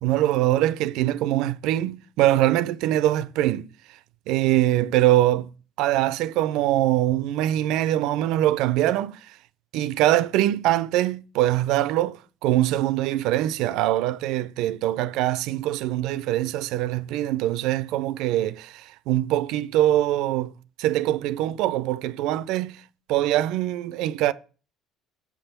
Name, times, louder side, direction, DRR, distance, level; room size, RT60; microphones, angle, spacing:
voice 1, 0.0-3.7 4.3-5.5 5.8-9.2 9.7-20.5 20.8-22.8 23.1-24.3, right 14 dB, 75° right, 0.3 m, -23 dB
7.1 x 3.4 x 5.8 m
supercardioid pair, 85°, 0 cm